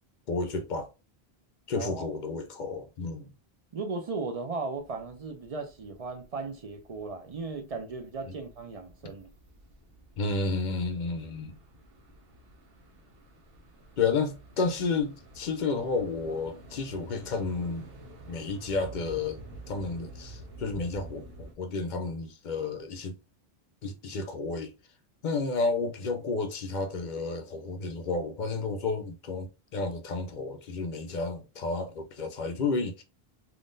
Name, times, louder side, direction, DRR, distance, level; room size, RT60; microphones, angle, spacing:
voice 1, 0.3-0.9 1.7-3.3 8.3-8.4 10.2-11.6 14.0-17.9 18.3-19.4 19.7-23.2 23.8-24.7 25.2-33.0, left 3 dB, 55° left, 0.6 m, -31 dB
voice 2, 1.8-2.1 3.7-9.3, right 4 dB, 50° right, 0.4 m, -36 dB
sound 1, 4.8-21.5, right 1 dB, 70° right, 1.0 m, -50 dB
3.6 x 2.4 x 2.5 m
omnidirectional pair, 1.0 m